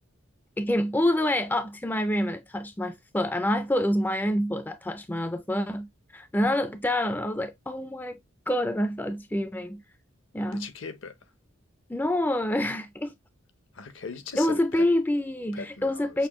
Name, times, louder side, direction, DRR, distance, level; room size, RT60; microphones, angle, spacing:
voice 1, 0.6-5.9 6.1-8.2 8.5-9.8 10.3-10.7 11.9-13.1 14.4-16.3, left 1 dB, 10° left, 0.3 m, -27 dB
voice 2, 10.5-11.1 13.7-14.8 15.5-16.3, left 5 dB, 65° left, 0.8 m, -39 dB
6.1 x 2.6 x 2.9 m
head